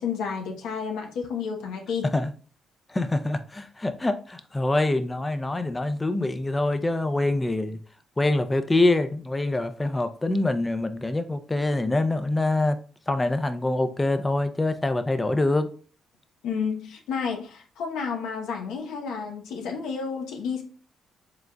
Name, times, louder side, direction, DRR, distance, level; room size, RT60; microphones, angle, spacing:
voice 1, 0.0-2.1 16.4-20.6, left 6 dB, 85° left, 0.9 m, -31 dB
voice 2, 2.9-7.8 8.2-12.8 13.1-15.7, left 2 dB, 15° left, 0.5 m, -25 dB
4.9 x 3.7 x 2.3 m
cardioid pair, 90°, 0 cm